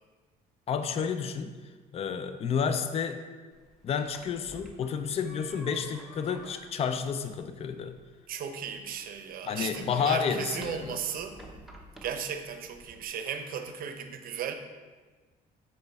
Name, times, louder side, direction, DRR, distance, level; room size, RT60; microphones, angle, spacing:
voice 1, 0.7-1.5 1.9-3.2 3.8-8.0 9.5-11.0, left 6 dB, 35° left, 9 dB, 0.4 m, -30 dB
sound 1, 3.5-13.1, equal, ahead, 0.8 m, -52 dB
voice 2, 8.3-11.4 12.0-14.5, right 7 dB, 60° right, 7 dB, 0.6 m, -36 dB
6.7 x 4.3 x 3.4 m, 1.4 s
cardioid pair, 110°, 17 cm